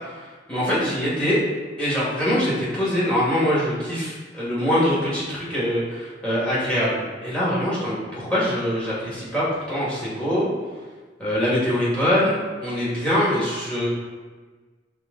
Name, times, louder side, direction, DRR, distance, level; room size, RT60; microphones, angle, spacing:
voice 1, 0.2-1.4 1.8-10.5 11.2-13.9, equal, 5° left, -8 dB, 1.3 m, -23 dB
5.6 x 2.2 x 3.7 m, 1.4 s
head